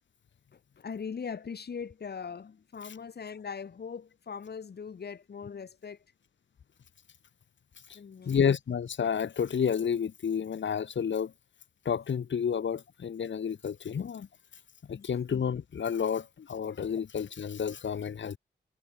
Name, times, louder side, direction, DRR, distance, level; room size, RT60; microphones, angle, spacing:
voice 1, 0.5-6.0 7.9-8.4 14.9-15.1, left 6 dB, 60° left, 3.3 m, -40 dB
voice 2, 8.2-11.3 11.8-14.3 14.9-18.4, left 7 dB, 80° left, 3.3 m, -30 dB
wide cardioid pair, 140°, 19 cm